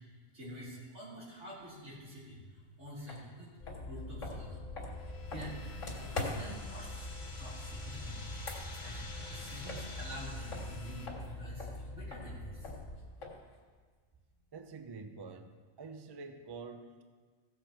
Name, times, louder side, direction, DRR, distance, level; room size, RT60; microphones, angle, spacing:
voice 1, 0.3-3.5 3.9-4.6 5.2-5.6 6.0-8.4 8.8-12.7, equal, 80° right, -7 dB, 4.0 m, -47 dB
sound 1, 3.1-3.2 3.6-6.7 8.2-10.2 10.5-13.6, left 2 dB, 85° left, 2.4 m, -43 dB
sound 2, 3.6-13.0, left 1 dB, 40° left, 1.9 m, -45 dB
sound 3, 5.0-11.1, left 2 dB, 60° left, 2.1 m, -50 dB
voice 2, 14.5-17.0, right 4 dB, 30° right, 7 dB, 0.5 m, -47 dB
16.5 x 7.5 x 4.4 m, 1.5 s
omnidirectional pair, 1.3 m